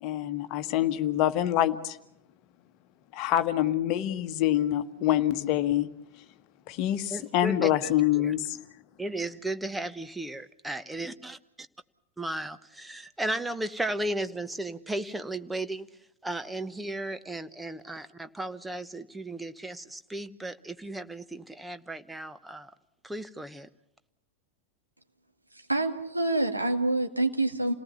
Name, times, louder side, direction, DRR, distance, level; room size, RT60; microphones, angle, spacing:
voice 1, 0.0-2.0 3.1-5.9 6.7-8.6, left 12 dB, 40° left, 10 dB, 1.4 m, -26 dB
voice 2, 7.1-7.7 8.1-8.3 9.0-11.3 12.2-15.9 16.2-22.7 23.0-23.7, right 1 dB, 5° right, 11 dB, 1.1 m, -35 dB
voice 3, 25.7-27.7, right 2 dB, 85° right, 4 dB, 2.1 m, -26 dB
28.5 x 18.5 x 7.2 m, 0.85 s
figure-of-eight pair, 90°, 0 cm